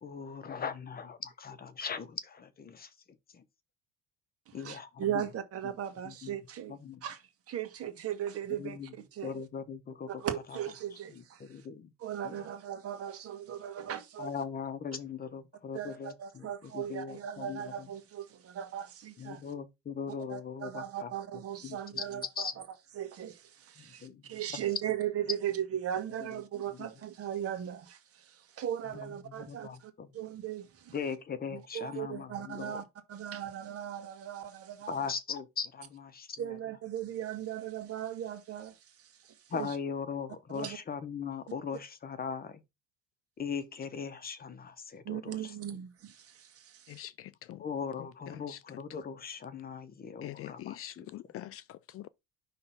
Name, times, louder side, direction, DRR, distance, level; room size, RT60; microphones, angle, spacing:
voice 1, 0.0-2.9 3.3-3.4 4.5-5.2 6.0-6.4 6.7-7.0 8.6-8.9 9.2-10.1 11.1-11.9 12.2-12.4 14.2-16.5 16.7-17.6 19.2-21.1 21.6-22.5 23.8-24.6 29.3-30.1 30.9-32.8 34.9-36.5 39.5-42.6 43.4-45.5 47.6-51.1, left 6 dB, 30° left, 0.9 m, -39 dB
voice 2, 4.5-9.4 10.1-11.7 12.0-14.3 15.7-19.4 20.3-22.7 22.9-30.9 31.5-35.0 36.4-39.8 40.5-40.8 45.0-47.1, right 10 dB, 50° right, 1.6 m, -38 dB
voice 3, 46.9-47.6 48.0-48.8 50.2-52.1, left 14 dB, 50° left, 0.4 m, -45 dB
5.7 x 3.3 x 5.6 m
cardioid pair, 120°, 31 cm